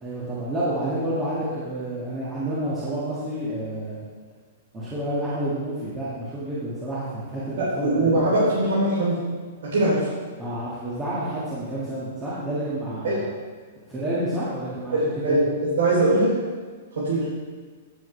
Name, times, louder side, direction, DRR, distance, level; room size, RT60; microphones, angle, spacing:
voice 1, 0.0-4.0 4.7-8.2 10.4-13.2 13.9-15.4, right 1 dB, 15° right, -10 dB, 2.1 m, -29 dB
voice 2, 7.6-9.2 9.6-10.1 13.0-13.2 14.9-16.3 17.0-17.3, right 1 dB, 75° right, -7 dB, 3.6 m, -21 dB
16.5 x 7.6 x 3.4 m, 1.5 s
hypercardioid pair, 160°, 0 cm